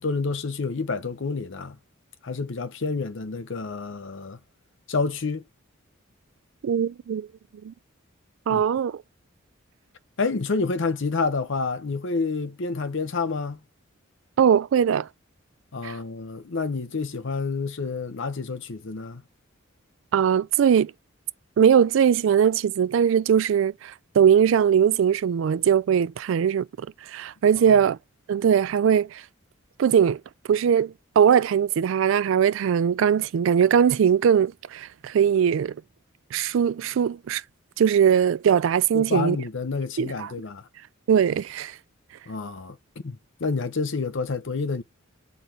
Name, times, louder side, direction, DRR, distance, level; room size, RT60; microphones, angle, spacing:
voice 1, 0.0-1.8 2.2-4.4 4.9-5.4 8.5-8.6 10.2-13.6 15.7-19.2 27.7-27.8 38.9-40.7 42.3-42.8 43.0-44.8, left 4 dB, 60° left, 0.7 m, -28 dB
voice 2, 6.6-7.3 7.6-7.7 8.5-9.0 14.4-15.1 15.8-15.9 20.1-20.9 21.6-26.7 27.1-28.0 28.3-29.2 29.8-30.2 30.5-35.7 36.3-37.4 37.8-39.4 40.0-40.3 41.1-41.7, right 8 dB, 65° right, 0.3 m, -20 dB
6.6 x 4.0 x 4.4 m
head